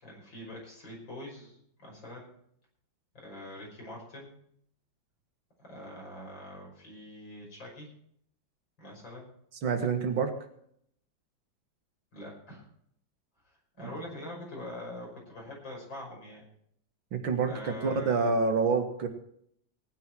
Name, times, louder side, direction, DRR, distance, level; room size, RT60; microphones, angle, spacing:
voice 1, 0.0-2.3 3.1-4.4 5.6-7.9 8.8-9.3 12.1-12.6 13.8-16.5 17.4-18.4, left 1 dB, 70° left, -2 dB, 6.2 m, -44 dB
voice 2, 9.6-10.3 13.8-13.9 17.1-19.1, right 4 dB, 85° right, 6 dB, 2.5 m, -27 dB
18.5 x 10.5 x 4.6 m, 0.68 s
omnidirectional pair, 2.1 m